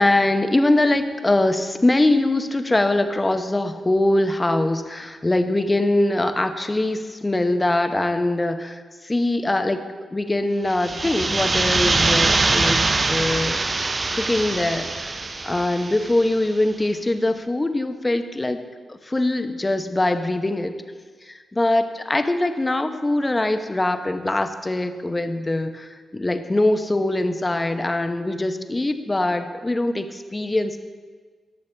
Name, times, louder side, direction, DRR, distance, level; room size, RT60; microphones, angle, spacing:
voice 1, 0.0-9.8 10.1-12.8 13.1-13.6 14.1-18.6 18.9-20.7 21.2-30.8, left 2 dB, 25° left, 8 dB, 0.7 m, -22 dB
sound 1, 10.7-16.4, right 3 dB, 40° right, 0.4 m, -23 dB
13.0 x 6.6 x 3.3 m, 1.5 s
supercardioid pair, 45°, 0 cm